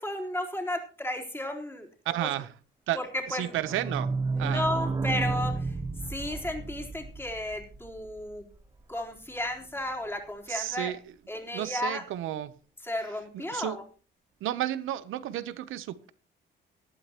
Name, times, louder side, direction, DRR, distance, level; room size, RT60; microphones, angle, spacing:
voice 1, 0.0-1.9 2.2-2.3 2.9-3.6 4.3-5.8 6.1-8.5 8.9-10.9 11.3-12.0 12.8-13.8, left 1 dB, 10° left, 1 dB, 3.8 m, -33 dB
voice 2, 2.0-2.5 2.9-3.0 3.3-4.1 4.4-4.7 10.5-11.0 11.5-12.5 13.3-13.8 14.4-16.1, right 13 dB, 85° right, 15 dB, 0.9 m, -32 dB
sound 1, 3.3-8.8 9.2-9.3 9.4-9.5 9.8-9.9, right 3 dB, 20° right, 0.9 m, -32 dB
18.5 x 12.0 x 3.0 m, 0.39 s
cardioid pair, 90°, 20 cm